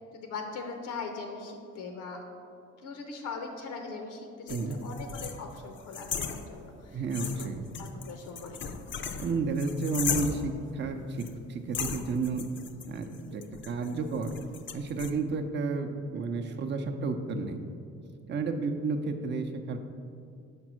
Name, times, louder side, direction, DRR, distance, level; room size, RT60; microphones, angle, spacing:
voice 1, 0.1-2.5 2.8-7.5 7.8-8.6 13.3-13.5 16.3-16.5, left 4 dB, 85° left, 4 dB, 0.7 m, -41 dB
sound 1, 4.5-6.8 7.1-10.6 11.2-11.4 11.7-15.1, left 6 dB, 40° left, 0.5 m, -37 dB
voice 2, 6.9-7.6 9.2-12.5 12.8-14.4 14.7-17.7 18.3-19.8, right 4 dB, 35° right, 5 dB, 0.5 m, -32 dB
5.2 x 4.2 x 6.1 m, 2.4 s
cardioid pair, 90°, 30 cm